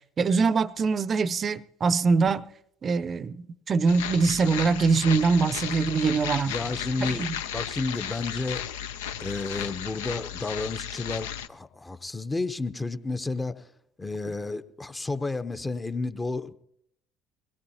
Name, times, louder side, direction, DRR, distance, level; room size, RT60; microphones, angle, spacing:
voice 1, 0.2-2.5 2.8-6.5 7.2-7.3, right 4 dB, 40° right, 0.6 m, -23 dB
sound 1, 3.9-11.5, left 9 dB, 75° left, 0.4 m, -34 dB
voice 2, 6.4-7.3 7.5-8.6 9.2-13.7 14.0-16.5, left 3 dB, 20° left, 0.8 m, -31 dB
21.0 x 17.5 x 2.8 m
hypercardioid pair, 60°, 0 cm